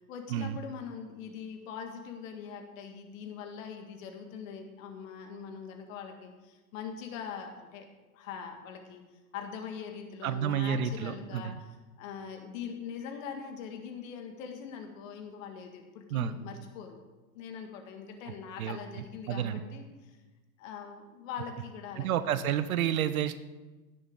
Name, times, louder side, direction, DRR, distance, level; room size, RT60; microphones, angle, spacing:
voice 1, 0.1-7.9 8.1-9.0 9.3-11.6 12.0-17.0 17.3-20.2 20.6-22.2, left 7 dB, 65° left, 4 dB, 1.9 m, -42 dB
voice 2, 10.2-11.6 16.1-16.4 18.6-18.8 19.3-19.6 22.0-23.4, right 9 dB, 75° right, 13 dB, 0.8 m, -30 dB
15.5 x 6.8 x 3.7 m, 1.2 s
hypercardioid pair, 95°, 43 cm